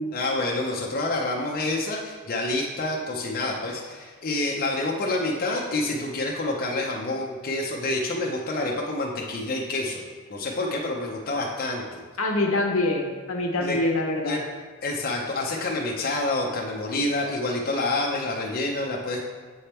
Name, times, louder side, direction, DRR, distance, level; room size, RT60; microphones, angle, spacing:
voice 1, 0.1-10.0 10.3-12.0 13.6-13.8 14.2-14.4 14.8-19.2, left 2 dB, 45° left, -2 dB, 0.5 m, -28 dB
voice 2, 12.2-14.4, left 2 dB, 75° left, 2 dB, 0.9 m, -25 dB
7.8 x 3.4 x 4.3 m, 1.5 s
head